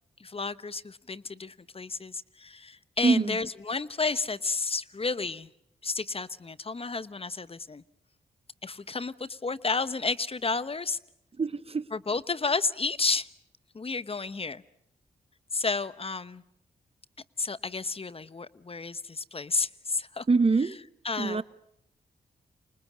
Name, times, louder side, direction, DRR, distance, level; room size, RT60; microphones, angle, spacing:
voice 1, 0.2-5.5 5.8-7.8 8.6-11.0 11.9-13.3 13.7-14.6 15.5-16.4 17.4-20.2 21.0-21.4, left 4 dB, 35° left, 1.0 m, -31 dB
voice 2, 3.0-3.4 11.4-11.9 20.3-20.8 21.2-21.4, right 4 dB, 35° right, 1.0 m, -24 dB
28.5 x 26.0 x 6.3 m
supercardioid pair, 50°, 16 cm